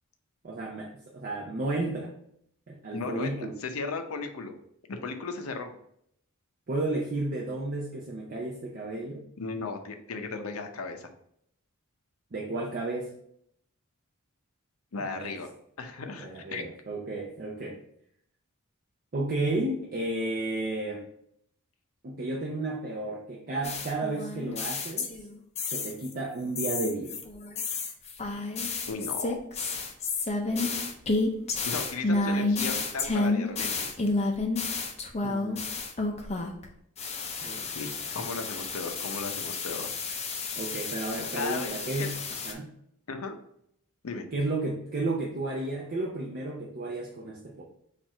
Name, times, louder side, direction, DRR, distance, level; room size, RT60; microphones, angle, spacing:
voice 1, 0.4-2.1 2.7-3.6 6.7-9.2 12.3-13.1 15.0-15.4 16.2-17.8 19.1-21.0 22.0-25.1 25.6-27.2 30.5-30.8 35.2-35.7 37.4-37.6 40.6-42.2 42.4-42.7 44.3-47.6, right 2 dB, 40° right, -1 dB, 0.6 m, -32 dB
voice 2, 2.9-4.5 4.9-5.7 9.4-11.1 14.9-15.5 15.8-16.6 28.9-29.4 31.7-33.9 37.6-39.9 41.3-42.1 43.1-43.4 44.0-44.3, left 4 dB, 75° left, 6 dB, 0.6 m, -36 dB
sound 1, 23.6-26.1 26.6-36.7 37.0-42.5, left 3 dB, 30° left, 0.5 m, -31 dB
4.4 x 2.5 x 4.3 m, 0.70 s
head